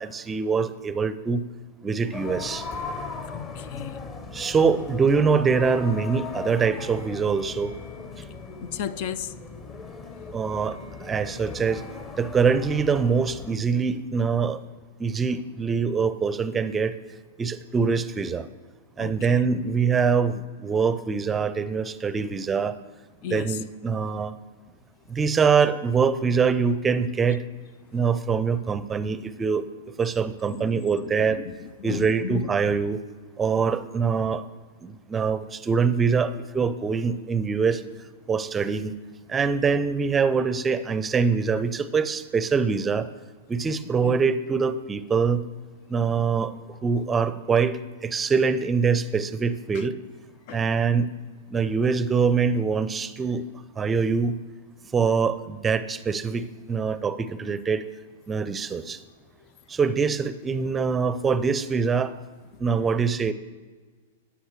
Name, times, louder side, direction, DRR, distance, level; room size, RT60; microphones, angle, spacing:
voice 1, 0.0-1.4 1.8-2.7 4.3-7.7 10.3-11.8 12.2-14.6 15.0-16.9 17.4-18.5 19.0-22.8 23.3-24.4 25.1-27.4 27.9-29.7 30.0-31.4 31.8-33.0 33.4-34.4 34.8-37.8 38.3-38.9 39.3-43.1 43.5-45.4 45.9-50.0 50.5-51.1 51.5-53.4 53.8-54.4 54.9-57.8 58.3-59.0 59.7-62.1 62.6-63.3, right 5 dB, 15° right, 14 dB, 0.6 m, -24 dB
sound 1, 2.0-12.1, left 4 dB, 75° left, 1.4 m, -47 dB
sound 2, 2.1-13.5, left 4 dB, 25° left, 1.0 m, -38 dB
voice 2, 3.3-4.0 8.6-9.3 19.0-19.5 23.2-23.6 30.6-30.9 31.2-31.5 31.8-32.4 44.0-44.2 50.5-50.6, left 9 dB, 50° left, 16 dB, 0.4 m, -34 dB
14.5 x 9.7 x 3.2 m, 1.4 s
hypercardioid pair, 110°, 0 cm